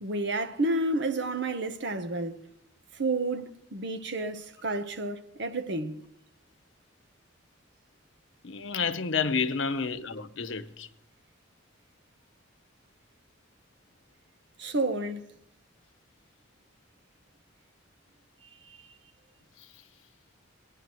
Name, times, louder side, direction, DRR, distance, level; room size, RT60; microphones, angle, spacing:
voice 1, 0.0-2.4 3.0-6.0 14.6-15.3 18.7-18.8, right 2 dB, 60° right, 0.9 m, -30 dB
voice 2, 8.4-10.9, left 5 dB, 70° left, 0.8 m, -30 dB
17.5 x 9.9 x 3.0 m
head